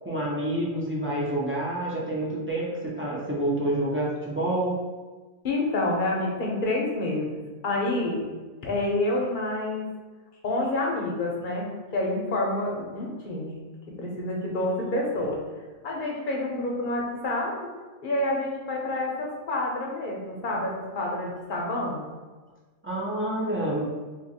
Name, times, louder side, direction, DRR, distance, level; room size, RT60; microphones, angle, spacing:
voice 1, 0.0-4.8 22.8-23.9, right 1 dB, 15° right, -6 dB, 0.4 m, -28 dB
voice 2, 5.4-7.3 7.6-8.3 8.6-9.8 10.4-11.7 11.9-13.6 14.0-15.4 15.8-17.5 18.0-22.1, left 2 dB, 50° left, -2 dB, 0.8 m, -28 dB
2.7 x 2.4 x 4.0 m, 1.3 s
omnidirectional pair, 1.2 m